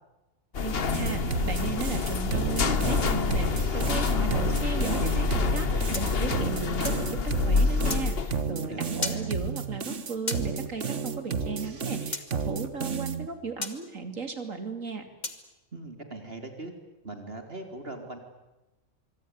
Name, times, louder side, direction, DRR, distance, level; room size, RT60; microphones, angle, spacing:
sound 1, 0.5-8.4, left 5 dB, 50° left, 1.3 m, -27 dB
voice 1, 0.6-15.1, right 4 dB, 80° right, 8 dB, 3.3 m, -36 dB
sound 2, 0.9-13.3, right 6 dB, 65° right, 1.9 m, -32 dB
sound 3, 5.9-7.1 7.9-8.1 9.0-9.2 10.3-10.5 12.1-12.3 13.6-13.8 15.2-15.4, left 2 dB, 35° left, 2.4 m, -33 dB
voice 2, 8.7-9.3 15.7-16.7 17.0-18.2, right 2 dB, 50° right, 5 dB, 4.0 m, -40 dB
25.0 x 24.5 x 9.7 m, 1.0 s
omnidirectional pair, 1.3 m